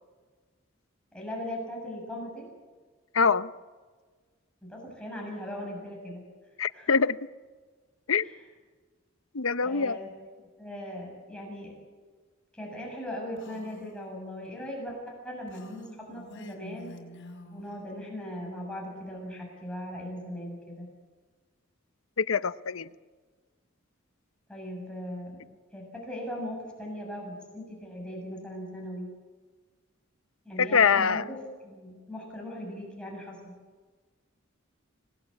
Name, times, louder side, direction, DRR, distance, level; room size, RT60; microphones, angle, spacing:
voice 1, 1.1-2.5 4.6-6.2 6.7-6.9 8.2-8.3 9.6-10.1 10.4-11.7 12.5-15.0 15.2-16.9 17.5-20.9 24.5-25.4 25.7-29.1 30.5-31.4 31.6-33.5, equal, 5° left, 7.1 m, -39 dB
voice 2, 3.1-3.5 6.6-7.2 8.1-8.2 9.3-10.0 22.2-22.9 30.6-31.2, left 5 dB, 85° left, 0.8 m, -24 dB
Female speech woman speaking, 13.4-14.0 15.5-17.8, left 1 dB, 60° left, 4.8 m, -47 dB
26.5 x 19.0 x 8.6 m
head